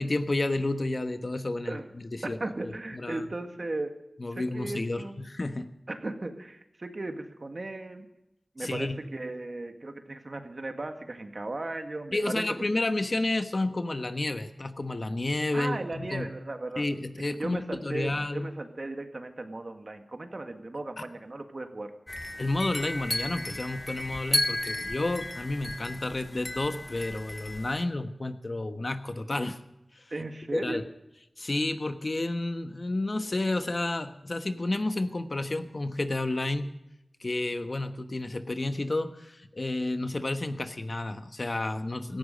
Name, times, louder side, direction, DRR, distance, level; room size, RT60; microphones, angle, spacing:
voice 1, 0.0-1.8 2.3-2.4 2.9-3.2 4.2-5.7 8.6-9.0 12.1-16.3 16.8-18.5 22.4-29.6 30.0-30.1 30.5-30.8 31.4-36.7 37.2-42.2, left 2 dB, 45° left, 9 dB, 1.2 m, -31 dB
voice 2, 2.2-3.9 4.3-5.2 5.9-8.1 8.6-12.4 15.5-16.9 17.4-21.9 30.1-30.9, right 2 dB, 50° right, 6 dB, 1.8 m, -36 dB
sound 1, 22.1-27.8, left 1 dB, 30° left, 0.8 m, -34 dB
17.0 x 14.5 x 5.3 m, 0.88 s
wide cardioid pair, 70°, 0 cm